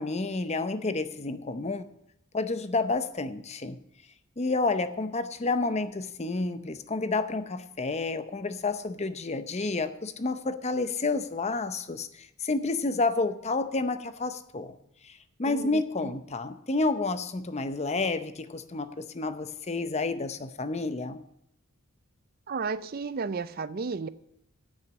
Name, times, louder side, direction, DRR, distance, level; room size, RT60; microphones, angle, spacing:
voice 1, 0.0-1.9 2.3-3.8 4.4-14.8 15.0-21.2, left 3 dB, 30° left, 0.7 m, -30 dB
voice 2, 22.5-24.1, right 4 dB, 45° right, 0.5 m, -33 dB
9.0 x 6.5 x 8.5 m
head